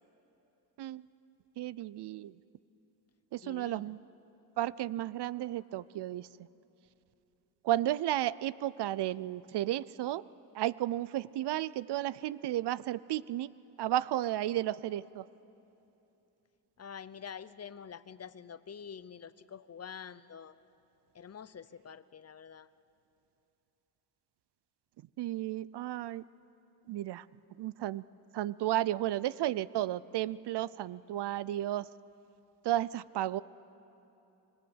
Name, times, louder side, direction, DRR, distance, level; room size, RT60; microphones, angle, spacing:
voice 1, 1.6-2.4 3.3-4.0 4.6-6.3 7.6-10.2 10.5-13.5 13.8-15.3 25.2-26.2 26.9-27.3 27.6-28.0 28.3-31.9 32.6-33.4, right 13 dB, 70° right, 20 dB, 0.6 m, -33 dB
voice 2, 3.4-4.0 16.8-20.5 21.1-22.7, left 7 dB, 35° left, 15 dB, 0.8 m, -47 dB
26.0 x 23.0 x 8.0 m, 3.0 s
cardioid pair, 85°, 42 cm